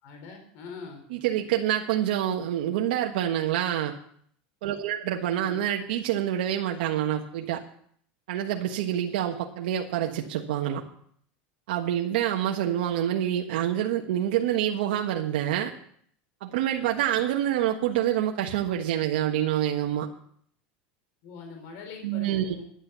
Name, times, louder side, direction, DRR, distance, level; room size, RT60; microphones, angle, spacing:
voice 1, 0.0-1.0 5.3-5.6 21.2-22.6, left 5 dB, 55° left, 4 dB, 3.9 m, -43 dB
voice 2, 1.1-3.9 4.6-7.6 8.3-10.8 11.7-15.7 16.4-20.1 22.0-22.5, right 11 dB, 80° right, 1 dB, 1.3 m, -27 dB
11.5 x 10.0 x 6.8 m, 0.62 s
supercardioid pair, 145°, 5 cm